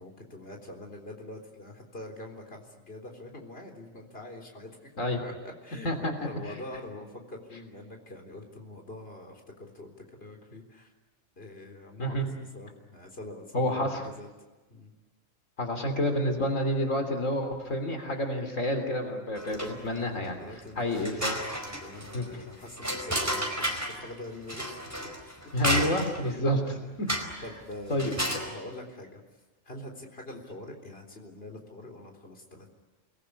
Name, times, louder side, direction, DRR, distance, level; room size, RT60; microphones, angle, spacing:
voice 1, 0.0-4.9 5.2-10.9 11.4-14.3 14.7-14.9 19.5-19.9 20.2-26.4 26.7-29.2 29.6-32.7, left 1 dB, 50° left, 2 dB, 4.2 m, -45 dB
voice 2, 13.5-14.0 15.6-20.4 20.8-21.4 22.1-22.4 25.5-26.6 27.0-27.4 27.9-28.1, equal, 85° left, 5 dB, 3.5 m, -29 dB
sound 1, 19.4-20.0 20.4-20.5 20.9-24.0 24.5-26.3 27.1-27.5 27.9-28.5, equal, 10° right, 4.6 m, -32 dB
29.5 x 21.0 x 9.8 m, 1.2 s
omnidirectional pair, 1.3 m